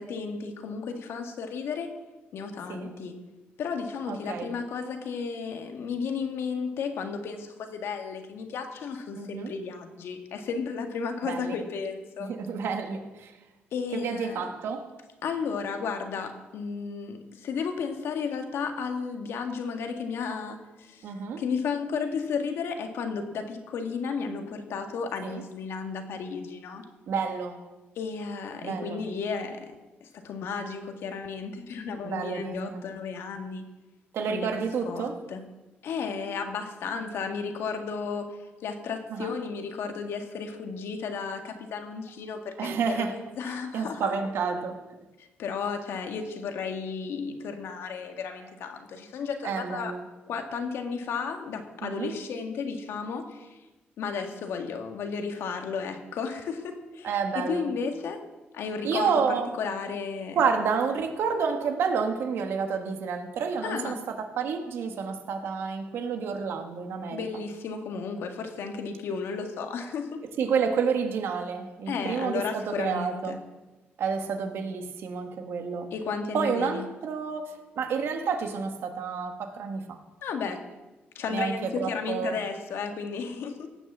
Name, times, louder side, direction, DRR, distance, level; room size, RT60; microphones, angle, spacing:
voice 1, 0.0-1.9 2.3-3.2 3.6-12.3 13.7-14.5 15.2-26.9 28.0-29.8 30.0-33.6 34.3-34.6 34.9-35.5 35.8-44.1 45.2-50.0 50.3-53.6 54.0-58.2 58.5-60.4 63.6-64.0 67.1-70.2 71.9-73.4 75.9-76.9 80.2-80.7 81.2-83.7, left 5 dB, 75° left, 5 dB, 1.8 m, -33 dB
voice 2, 4.1-4.5 9.2-9.5 11.2-11.6 12.2-13.3 13.9-14.9 21.0-21.4 25.2-25.4 27.1-27.6 28.6-29.0 32.0-32.9 34.1-35.3 39.1-39.3 42.6-43.2 43.7-44.8 49.4-50.0 51.8-52.1 57.0-57.7 58.8-59.5 60.3-67.2 70.4-73.4 74.0-75.9 76.3-80.0 81.3-82.4, right 5 dB, 75° right, 5 dB, 1.6 m, -30 dB
18.0 x 6.2 x 7.3 m, 1.1 s
cardioid pair, 100°, 4 cm